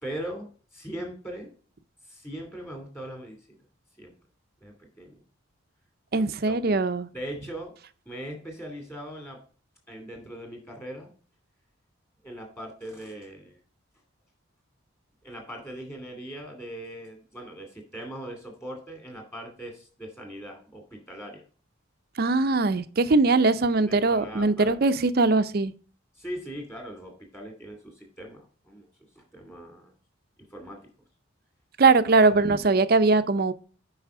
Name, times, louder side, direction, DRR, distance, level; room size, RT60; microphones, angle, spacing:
voice 1, 0.0-1.5 2.1-3.6 4.0-4.1 4.6-5.2 6.1-6.8 7.1-7.7 8.1-9.4 9.9-11.1 12.2-13.6 15.2-21.4 23.9-24.8 26.2-28.9 29.2-29.9 30.5-30.8 32.3-32.4, right 1 dB, 15° left, 2.5 m, -40 dB
voice 2, 6.1-7.1 22.2-25.7 31.8-33.5, right 3 dB, 50° right, 0.5 m, -21 dB
8.2 x 5.6 x 3.7 m
head